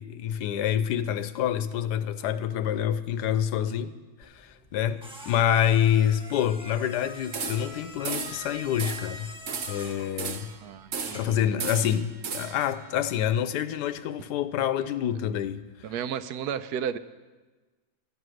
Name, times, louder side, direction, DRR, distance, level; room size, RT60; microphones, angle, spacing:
voice 1, 0.0-3.9 4.2-9.3 9.7-10.5 11.1-15.6, left 10 dB, 85° left, 1.2 m, -27 dB
sound 1, 4.2-11.5, equal, 5° right, 1.2 m, -45 dB
sound 2, 7.3-7.8 8.0-8.4 8.8-9.1 9.5-10.6 10.9-11.3 11.6-12.7, right 6 dB, 55° right, 1.1 m, -34 dB
voice 2, 10.6-11.4 15.8-17.0, right 8 dB, 80° right, 1.1 m, -33 dB
13.0 x 9.8 x 6.3 m
omnidirectional pair, 1.7 m